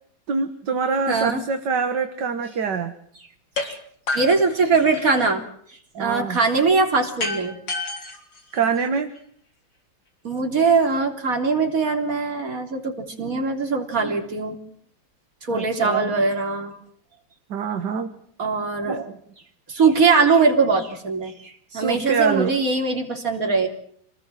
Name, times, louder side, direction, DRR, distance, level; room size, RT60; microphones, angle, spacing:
voice 1, 0.3-3.0 6.0-6.4 8.5-9.1 15.5-16.1 17.5-18.2 18.9-19.2 21.7-22.5, right 5 dB, 60° right, 7 dB, 2.1 m, -25 dB
voice 2, 1.1-1.4 3.6-3.8 4.1-5.4 5.9-7.6 10.2-14.6 15.4-16.7 18.4-19.0 19.7-23.7, right 4 dB, 45° right, 3 dB, 3.9 m, -21 dB
sound 1, 3.6-3.7 4.1-5.3 7.2-9.2, left 3 dB, 70° left, 4.5 m, -30 dB
27.0 x 19.0 x 7.7 m, 0.64 s
omnidirectional pair, 2.1 m